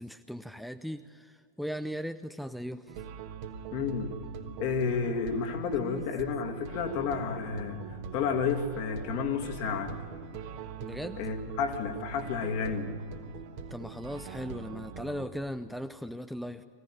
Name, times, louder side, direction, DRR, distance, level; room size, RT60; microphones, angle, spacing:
voice 1, 0.0-3.0 5.8-6.0 10.8-11.2 13.7-16.6, equal, ahead, 9 dB, 0.6 m, -38 dB
sound 1, 2.9-15.3, right 6 dB, 50° right, 1.5 m, -43 dB
voice 2, 3.7-4.2 4.6-7.8 8.1-10.0 11.2-12.9, left 5 dB, 45° left, 3 dB, 2.0 m, -31 dB
22.5 x 16.5 x 8.8 m, 2.3 s
figure-of-eight pair, 90°, 0 cm